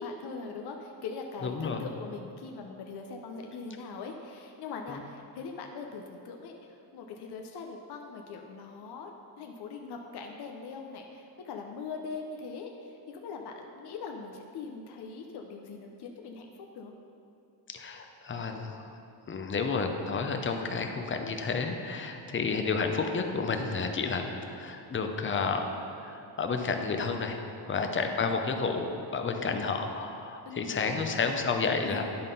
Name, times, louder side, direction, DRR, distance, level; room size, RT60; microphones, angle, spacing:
voice 1, 0.0-6.5 6.9-9.1 9.4-16.9 27.6-28.1 29.3-29.7 30.5-31.1 31.8-32.0, left 4 dB, 70° left, 3 dB, 0.7 m, -41 dB
voice 2, 1.4-1.9 4.9-5.0 17.7-18.9 19.3-25.6 26.0-27.4 27.7-32.0, left 4 dB, 30° left, 5 dB, 0.6 m, -31 dB
10.5 x 3.7 x 5.4 m, 2.7 s
cardioid pair, 130°, 42 cm